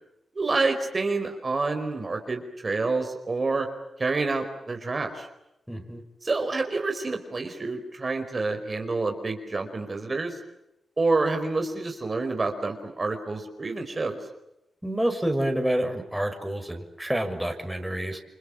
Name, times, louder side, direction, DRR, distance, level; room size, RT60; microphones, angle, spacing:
voice 1, 0.3-3.7 4.0-5.3 6.2-10.4 11.0-14.2, right 3 dB, 40° right, 5 dB, 4.8 m, -28 dB
voice 2, 5.7-6.0 14.8-18.2, right 1 dB, 5° right, 5 dB, 6.1 m, -28 dB
29.5 x 25.0 x 7.4 m, 0.88 s
cardioid pair, 55°, 0 cm